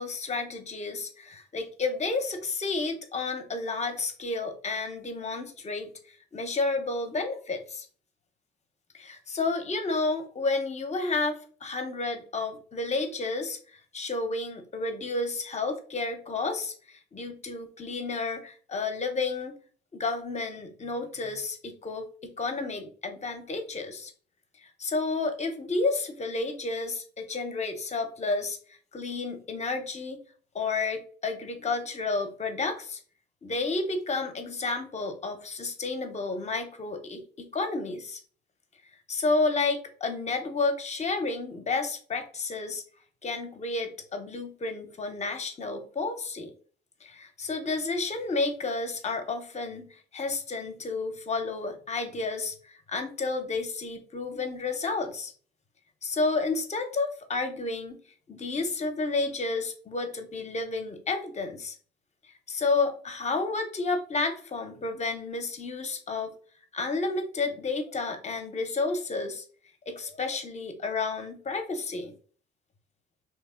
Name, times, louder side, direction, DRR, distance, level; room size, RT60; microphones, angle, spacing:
voice 1, 0.0-7.9 8.9-19.6 19.9-24.1 24.8-28.6 28.9-30.2 30.5-33.0 33.4-38.2 39.1-42.8 43.2-46.5 47.0-55.3 56.0-58.0 58.3-61.7 62.5-66.3 66.7-69.4 69.9-72.1, left 3 dB, 35° left, 6 dB, 0.8 m, -31 dB
2.9 x 2.7 x 3.7 m, 0.43 s
cardioid pair, 90°, 20 cm